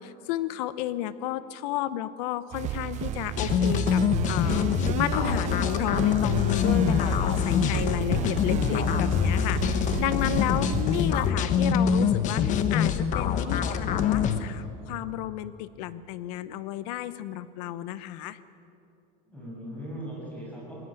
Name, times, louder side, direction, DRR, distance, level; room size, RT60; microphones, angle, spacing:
voice 1, 0.0-18.4, left 13 dB, 85° left, 15 dB, 1.0 m, -32 dB
sound 1, 2.5-11.3, right 12 dB, 35° right, 0.5 m, -33 dB
sound 2, 3.4-14.4, left 7 dB, 40° left, 1.2 m, -25 dB
Speech, 7.0-7.1 12.3-12.9 14.2-14.4, right 6 dB, 20° right, 1.0 m, -42 dB
voice 2, 7.4-8.8 10.8-11.5 19.2-20.8, equal, 5° left, -3 dB, 7.4 m, -39 dB
20.0 x 18.0 x 9.1 m, 2.7 s
cardioid pair, 160°, 20 cm